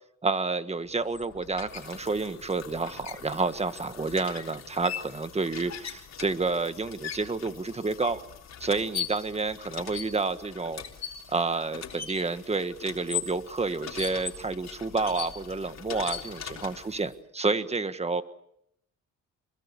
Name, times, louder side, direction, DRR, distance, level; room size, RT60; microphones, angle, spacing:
voice 1, 0.2-8.2 8.6-10.8 11.3-18.2, right 3 dB, 20° right, 11 dB, 1.5 m, -29 dB
sound 1, 0.9-17.1, left 8 dB, 60° left, 3.6 m, -40 dB
25.5 x 22.5 x 6.9 m, 0.78 s
cardioid pair, 90°, 30 cm